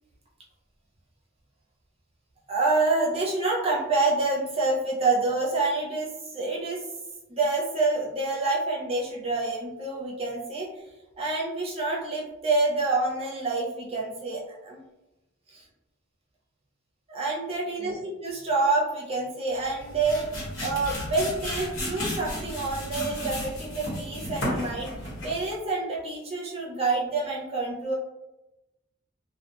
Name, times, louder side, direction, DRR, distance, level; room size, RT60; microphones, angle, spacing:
voice 1, 2.5-6.8 7.3-10.8 11.2-14.8 15.5-15.6 17.1-20.3 20.6-24.9 25.2-27.9, right 3 dB, 30° right, -4 dB, 0.7 m, -27 dB
sound 1, 19.7-25.5, left 1 dB, 70° left, 1.2 m, -33 dB
2.4 x 2.2 x 2.9 m, 0.98 s
head